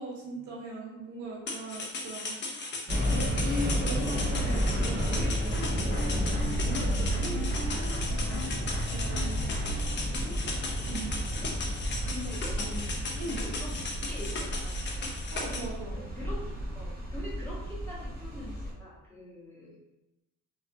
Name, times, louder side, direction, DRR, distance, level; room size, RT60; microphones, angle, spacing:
voice 1, 0.0-2.8 3.1-9.6 10.2-10.5 10.9-11.3 13.2-13.5 15.3-16.0, equal, 70° right, -4 dB, 0.9 m, -39 dB
sound 1, 1.5-15.6, left 3 dB, 40° left, 0.5 m, -37 dB
sound 2, 2.9-18.7, equal, 30° right, 0.8 m, -32 dB
sound 3, 4.1-9.8, left 1 dB, 65° left, 0.8 m, -38 dB
voice 2, 11.3-11.8 12.0-12.9 13.2-15.4 15.9-16.4 16.7-19.8, left 1 dB, 10° left, -8 dB, 0.9 m, -44 dB
2.4 x 2.0 x 2.5 m, 0.97 s
cardioid pair, 90°, 30 cm